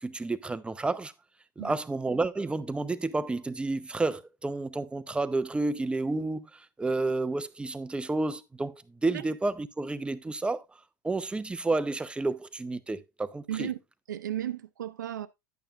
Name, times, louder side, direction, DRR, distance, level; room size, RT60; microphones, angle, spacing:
voice 1, 0.0-1.1 1.6-10.6 11.0-13.7, right 2 dB, 10° right, 0.6 m, -30 dB
voice 2, 13.5-13.8 14.1-15.3, right 11 dB, 80° right, 0.7 m, -34 dB
10.5 x 8.5 x 2.4 m
hypercardioid pair, 80°, 10 cm